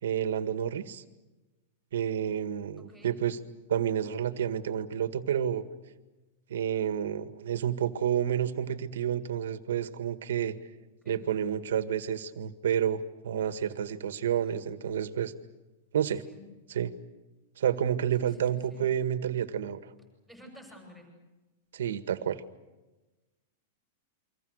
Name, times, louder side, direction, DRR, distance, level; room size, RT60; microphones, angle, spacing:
voice 1, 0.0-1.0 1.9-3.4 3.7-5.6 6.5-10.5 11.1-15.3 15.9-16.2 16.7-16.9 17.6-19.9 21.7-22.4, right 9 dB, 85° right, 10 dB, 1.8 m, -30 dB
voice 2, 2.8-3.2 11.0-11.2 14.4-14.7 16.2-16.4 18.2-18.9 20.3-21.1, left 1 dB, 5° left, 2 dB, 6.6 m, -52 dB
29.5 x 25.0 x 6.6 m, 1.1 s
supercardioid pair, 175°, 0 cm